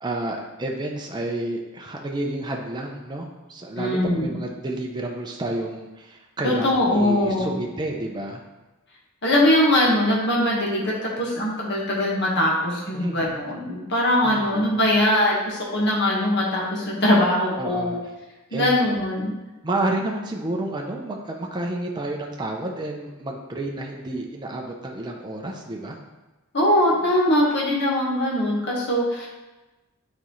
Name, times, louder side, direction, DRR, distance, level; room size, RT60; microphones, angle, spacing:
voice 1, 0.0-8.4 12.9-13.2 14.2-14.7 17.6-18.0 18.5-18.8 19.6-26.0, right 2 dB, 20° right, 0 dB, 0.5 m, -30 dB
voice 2, 3.8-4.4 6.4-7.5 9.2-18.0 18.5-19.4 26.5-29.3, left 1 dB, 55° left, -3 dB, 1.4 m, -21 dB
7.8 x 4.2 x 3.1 m, 1.1 s
head